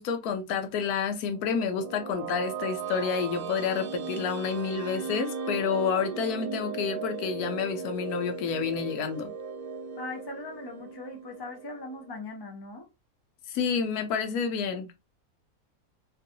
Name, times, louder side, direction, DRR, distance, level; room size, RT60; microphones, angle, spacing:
voice 1, 0.0-9.3 13.5-15.0, left 6 dB, 90° left, 1.1 m, -29 dB
sound 1, 1.4-12.2, right 5 dB, 85° right, 1.1 m, -37 dB
voice 2, 9.9-12.9, left 2 dB, 40° left, 0.3 m, -40 dB
3.0 x 2.7 x 2.5 m
omnidirectional pair, 1.6 m